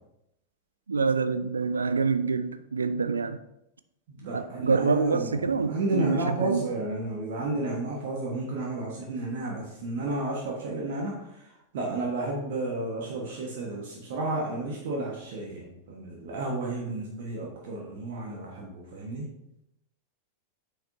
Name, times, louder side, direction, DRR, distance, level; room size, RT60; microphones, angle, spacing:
voice 1, 0.9-3.4 4.3-6.7, right 5 dB, 75° right, 12 dB, 0.4 m, -26 dB
voice 2, 4.1-19.3, right 2 dB, 55° right, -2 dB, 1.3 m, -32 dB
8.4 x 6.5 x 2.7 m, 0.83 s
figure-of-eight pair, 90°, 0 cm